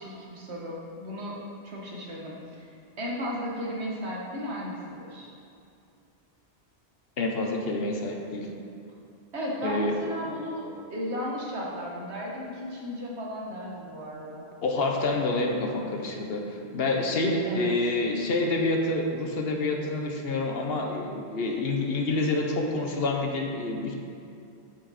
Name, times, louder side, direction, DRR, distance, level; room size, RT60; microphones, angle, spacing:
voice 1, 0.0-2.4 3.0-5.3 9.3-14.5 17.4-17.7, equal, 85° right, -4 dB, 1.7 m, -35 dB
voice 2, 7.2-8.5 9.6-9.9 14.6-23.9, left 2 dB, 65° left, 1 dB, 1.1 m, -27 dB
8.1 x 6.2 x 4.1 m, 2.5 s
omnidirectional pair, 1.1 m